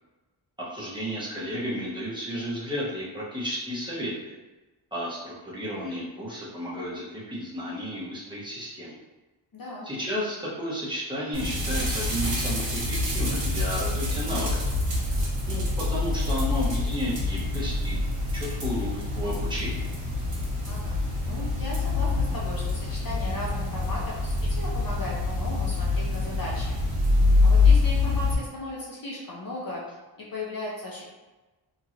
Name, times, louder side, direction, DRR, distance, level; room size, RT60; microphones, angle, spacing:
voice 1, 0.6-4.3 4.9-9.0 9.8-14.6 15.0-18.0 18.3-19.9, equal, 10° right, -8 dB, 1.1 m, -33 dB
voice 2, 9.5-9.9 20.7-26.8 27.4-29.8 30.2-31.0, left 1 dB, 45° left, -4 dB, 0.7 m, -36 dB
sound 1, 11.3-28.3, left 3 dB, 55° right, 1.2 m, -26 dB
3.0 x 2.8 x 2.5 m, 1.1 s
wide cardioid pair, 90°, 48 cm